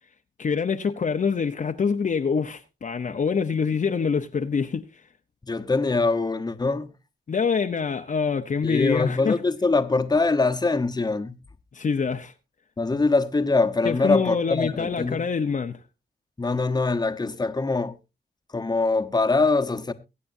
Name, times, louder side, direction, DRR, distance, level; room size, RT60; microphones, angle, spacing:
voice 1, 0.4-4.9 7.3-9.4 11.7-12.3 13.8-15.8, left 5 dB, 45° left, 0.8 m, -25 dB
voice 2, 5.4-6.9 8.6-11.4 12.8-15.2 16.4-18.0 18.5-19.9, left 3 dB, 20° left, 1.0 m, -23 dB
22.5 x 8.4 x 2.7 m
cardioid pair, 85°, 18 cm